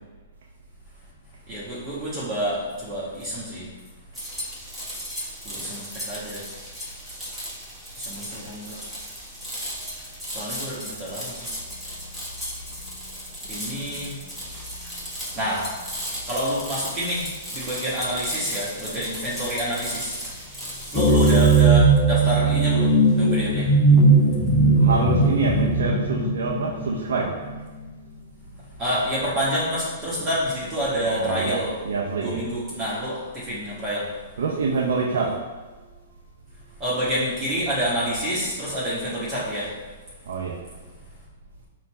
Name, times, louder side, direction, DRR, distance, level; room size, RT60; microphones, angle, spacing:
voice 1, 1.5-3.7 5.4-6.4 8.0-8.7 10.3-11.5 13.4-14.3 15.3-15.7 16.3-20.2 20.9-23.7 28.8-31.8 32.2-34.1 36.8-39.7, equal, 30° right, -8 dB, 1.2 m, -28 dB
sound 1, 4.1-21.6, equal, ahead, 1.2 m, -36 dB
sound 2, 20.9-27.6, right 3 dB, 30° left, 0.6 m, -18 dB
voice 2, 24.8-27.3 31.0-31.6 31.8-32.4 34.4-35.3 40.3-40.6, right 4 dB, 70° right, -3 dB, 0.6 m, -26 dB
4.3 x 2.4 x 4.2 m, 1.3 s
hypercardioid pair, 115°, 0 cm